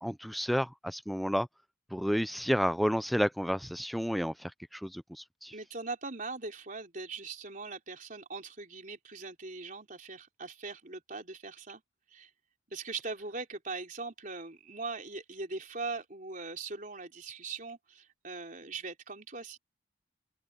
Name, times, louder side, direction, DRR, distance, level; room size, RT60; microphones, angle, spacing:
voice 1, 0.0-1.5 1.9-5.5, equal, ahead, 0.4 m, -31 dB
voice 2, 5.5-11.8 12.1-12.3 12.7-19.6, right 3 dB, 45° right, 3.9 m, -41 dB
open air
head